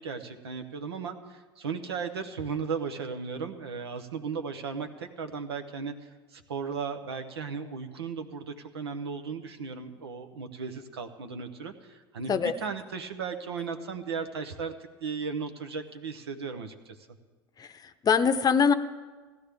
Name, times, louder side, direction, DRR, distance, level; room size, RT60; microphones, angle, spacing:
voice 1, 0.0-14.7 15.0-17.0, right 5 dB, 85° right, 6 dB, 0.9 m, -36 dB
voice 2, 17.6-18.7, left 6 dB, 30° left, 10 dB, 0.7 m, -23 dB
17.0 x 12.0 x 3.4 m, 1.4 s
hypercardioid pair, 80°, 13 cm